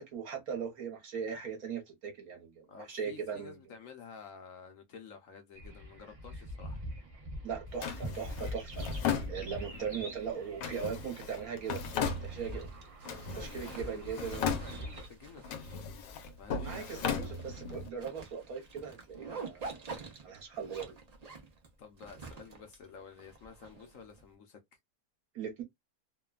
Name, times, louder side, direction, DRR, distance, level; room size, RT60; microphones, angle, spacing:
voice 1, 0.0-3.6 7.4-8.9 9.3-11.9 12.2-12.7 13.1-14.4 16.6-19.8 20.2-20.9 25.3-25.6, right 6 dB, 60° right, 1.3 m, -39 dB
voice 2, 2.7-6.8 9.7-9.9 13.3-15.9 16.4-17.2 21.8-24.6, left 6 dB, 65° left, 0.9 m, -51 dB
sound 1, 5.5-15.1, equal, 30° right, 0.6 m, -44 dB
Drawer open or close, 7.8-9.9 10.6-12.7 13.0-13.8 14.1-15.1 15.4-17.9, left 6 dB, 85° left, 1.3 m, -37 dB
Zipper (clothing), 11.7-24.2, right 4 dB, 85° right, 0.3 m, -48 dB
3.2 x 2.2 x 2.2 m
omnidirectional pair, 1.9 m